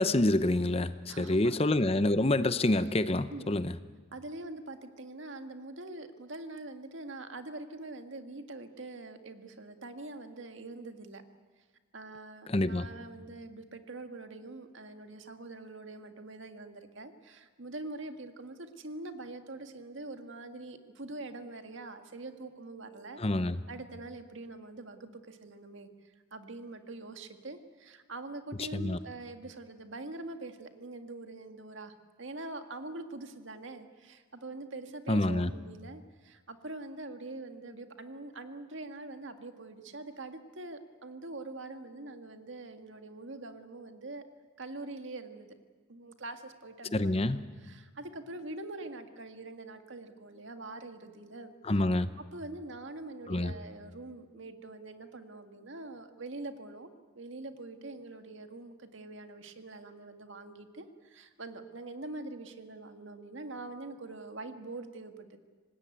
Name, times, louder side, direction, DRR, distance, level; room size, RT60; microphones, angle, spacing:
voice 1, 0.0-3.7 12.5-12.9 23.2-23.6 28.7-29.0 35.1-35.5 46.9-47.4 51.6-52.1 53.3-53.5, left 1 dB, 30° left, 13 dB, 0.7 m, -27 dB
voice 2, 1.1-1.6 3.3-3.6 4.1-11.2 11.9-23.2 23.7-44.2 44.6-45.5 45.9-47.2 47.6-51.5 52.3-56.9 57.2-65.4, right 2 dB, 70° right, 7 dB, 1.9 m, -44 dB
25.5 x 19.5 x 9.2 m, 1.4 s
head